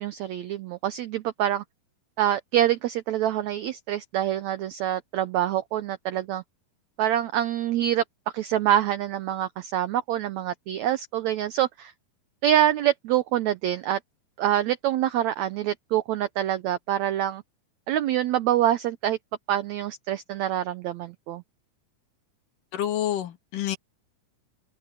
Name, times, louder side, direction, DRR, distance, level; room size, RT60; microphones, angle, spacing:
voice 1, 0.0-1.6 2.2-6.4 7.0-8.0 8.3-11.9 12.4-14.0 14.4-17.4 17.9-19.2 19.5-21.4, right 12 dB, 85° right, 1.6 m, -25 dB
voice 2, 22.7-23.8, left 11 dB, 70° left, 3.1 m, -28 dB
omnidirectional pair, 4.2 m